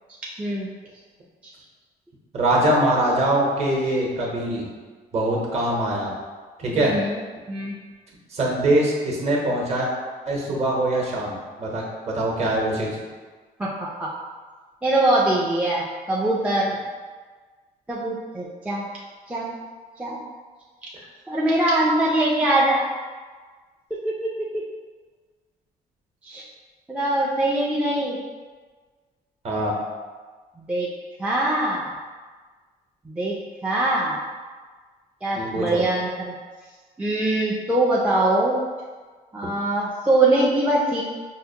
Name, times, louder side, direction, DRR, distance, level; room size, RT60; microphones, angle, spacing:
voice 1, 0.4-0.7 1.4-1.5 6.7-7.2 7.5-7.8 13.6-14.1 14.8-16.7 17.9-18.9 19.3-19.6 20.0-20.2 21.3-22.9 23.9-24.6 26.2-26.4 26.9-28.2 30.6-30.9 31.2-31.9 33.0-34.2 35.2-36.3 37.0-38.6 39.3-41.0, right 1 dB, 10° right, -5 dB, 0.3 m, -23 dB
voice 2, 2.3-4.7 5.1-6.1 6.6-6.9 8.3-9.9 10.3-13.0 29.4-29.7 35.3-35.8, right 1 dB, 40° right, -3 dB, 0.9 m, -23 dB
5.5 x 2.1 x 2.7 m, 1.4 s
cardioid pair, 155°, 16 cm